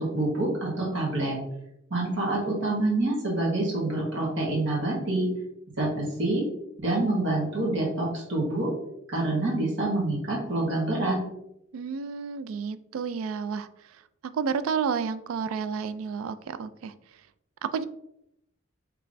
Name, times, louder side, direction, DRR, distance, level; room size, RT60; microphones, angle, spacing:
voice 1, 0.0-1.4 1.9-5.3 5.8-6.4 6.8-8.7 9.1-11.2, right 2 dB, 60° right, -3 dB, 1.4 m, -27 dB
voice 2, 11.7-13.7 14.3-16.9 17.6-17.8, right 6 dB, 85° right, 13 dB, 0.3 m, -30 dB
5.1 x 3.3 x 2.6 m, 0.80 s
head